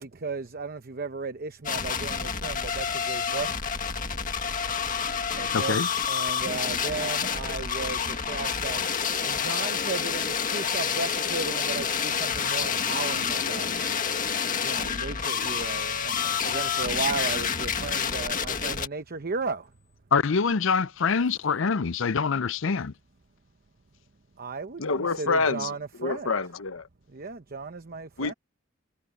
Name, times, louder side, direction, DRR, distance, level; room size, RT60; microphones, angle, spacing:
voice 1, 0.0-3.5 5.4-8.8 9.2-13.7 14.6-19.7 24.4-26.3 27.1-28.3, right 4 dB, 50° right, 0.9 m, -35 dB
sound 1, 1.6-18.9, left 7 dB, 40° left, 1.8 m, -28 dB
voice 2, 5.5-5.9 20.1-22.9, left 5 dB, 65° left, 0.6 m, -25 dB
voice 3, 24.8-25.7 26.0-26.9 28.2-28.3, left 4 dB, 90° left, 1.2 m, -27 dB
head